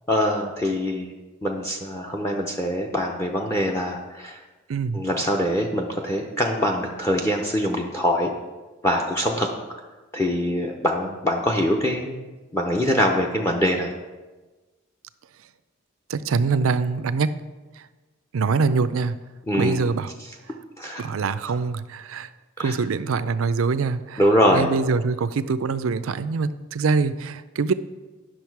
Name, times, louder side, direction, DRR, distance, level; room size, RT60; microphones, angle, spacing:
voice 1, 0.1-1.1 1.4-4.4 4.9-8.3 8.8-9.5 10.1-12.3 12.5-13.9 19.5-19.8 20.8-21.0 21.5-21.6 22.6-22.8 24.2-24.7, equal, 15° left, 1 dB, 0.6 m, -23 dB
voice 2, 4.7-5.0 16.1-17.4 17.8-17.9 18.3-19.2 19.6-20.1 21.0-22.3 22.6-24.2 24.5-27.7, right 4 dB, 90° right, 13 dB, 0.5 m, -24 dB
10.5 x 6.3 x 4.6 m, 1.2 s
head